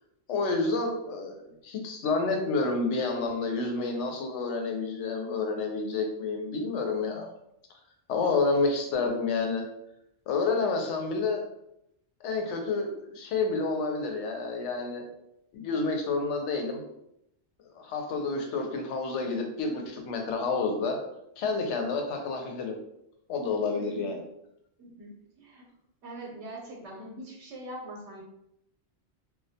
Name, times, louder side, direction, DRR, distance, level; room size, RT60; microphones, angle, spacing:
voice 1, 0.3-7.3 8.1-9.6 10.3-11.4 12.2-15.0 15.5-16.8 17.7-21.0 21.4-22.8 23.3-24.2, left 3 dB, 90° left, 2 dB, 0.9 m, -29 dB
voice 2, 23.8-24.1 24.8-25.6 26.0-28.2, right 1 dB, 90° right, -2 dB, 0.9 m, -43 dB
2.2 x 2.1 x 2.6 m, 0.78 s
omnidirectional pair, 1.2 m